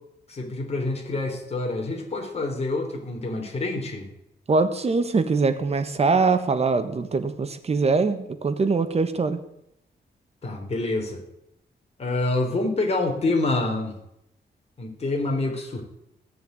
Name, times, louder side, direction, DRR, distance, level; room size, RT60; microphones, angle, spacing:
voice 1, 0.3-4.1 10.4-11.2 12.0-14.0 14.8-15.8, left 2 dB, 35° left, 1 dB, 3.7 m, -27 dB
voice 2, 4.5-9.4, right 4 dB, 35° right, 10 dB, 1.3 m, -23 dB
16.0 x 6.9 x 9.5 m, 0.81 s
wide cardioid pair, 165°, 18 cm